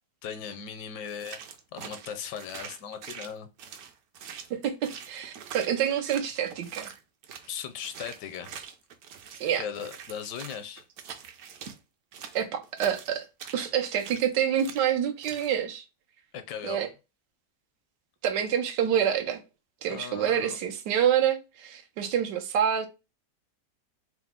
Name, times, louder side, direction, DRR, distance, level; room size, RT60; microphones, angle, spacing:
voice 1, 0.2-1.4 1.7-3.5 7.4-8.5 9.5-10.8 16.3-16.9 19.9-20.6, left 8 dB, 80° left, 1.2 m, -38 dB
sound 1, 1.1-7.5 7.8-11.8 12.1-14.3 14.6-14.9 15.2-15.6, right 7 dB, 70° right, 1.0 m, -44 dB
voice 2, 4.5-6.9 9.4-9.6 12.3-13.3 13.5-15.8 16.6-16.9 18.2-19.4 19.8-22.9, right 9 dB, 90° right, 1.4 m, -27 dB
4.5 x 2.0 x 3.6 m
omnidirectional pair, 1.8 m